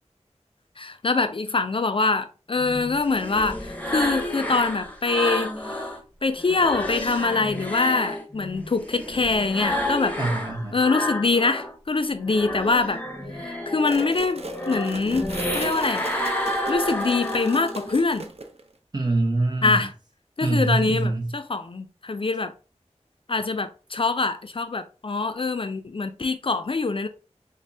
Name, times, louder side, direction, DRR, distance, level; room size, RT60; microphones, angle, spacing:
voice 1, 0.8-5.8 6.2-10.2 10.7-13.0 13.3-15.3 15.5-16.3 16.7-18.3 19.6-19.9 20.4-22.5 23.3-27.1, left 3 dB, 50° left, 0.3 m, -24 dB
sound 1, 2.6-6.0 6.4-11.7 12.1-18.0, left 1 dB, 15° left, 0.7 m, -30 dB
voice 2, 10.2-10.8 18.9-19.9 20.4-21.3, right 2 dB, 35° right, 0.9 m, -24 dB
sound 2, 13.9-18.7, right 3 dB, 60° right, 0.6 m, -39 dB
5.2 x 2.0 x 2.6 m
wide cardioid pair, 55°, 12 cm